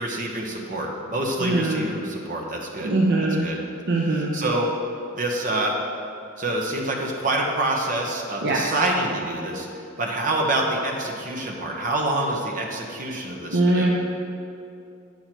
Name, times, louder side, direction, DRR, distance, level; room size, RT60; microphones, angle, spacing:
voice 1, 0.0-2.9 3.4-3.6 4.1-4.7 5.1-5.8 6.4-9.7 10.0-13.9, right 2 dB, 40° right, 0 dB, 1.1 m, -26 dB
voice 2, 1.4-1.8 2.8-3.5 3.9-4.3 8.4-8.6 13.5-13.9, right 2 dB, 55° right, -2 dB, 0.7 m, -21 dB
9.1 x 5.6 x 4.6 m, 2.5 s
head